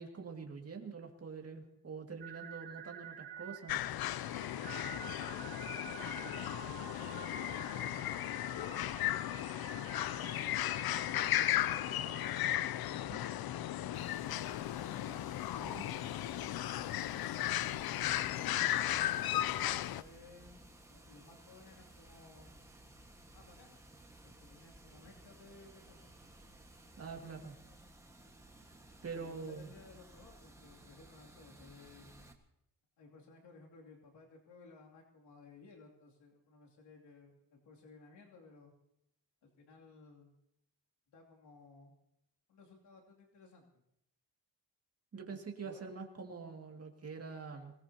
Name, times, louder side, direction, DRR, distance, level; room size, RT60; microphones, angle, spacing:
voice 1, 0.0-3.8 13.1-13.2 15.6-15.8 27.0-27.5 29.0-29.7 45.1-47.7, right 5 dB, 35° right, 2 dB, 2.3 m, -45 dB
sound 1, 2.2-12.3, right 7 dB, 85° right, 1.8 m, -50 dB
sound 2, 3.7-20.0, left 13 dB, 65° left, 0.5 m, -35 dB
voice 2, 5.3-7.9 8.4-10.8 11.0-12.1 12.7-17.4 17.9-20.6 20.9-22.5 23.3-23.8 24.2-26.1 29.1-32.3 33.0-38.7 39.4-40.3 41.1-41.9 42.5-43.8 45.3-45.8, left 3 dB, 90° left, -2 dB, 2.9 m, -58 dB
Water, 13.9-32.3, right 1 dB, 5° right, 1.5 m, -58 dB
25.5 x 18.5 x 2.9 m, 0.78 s
wide cardioid pair, 140°, 40 cm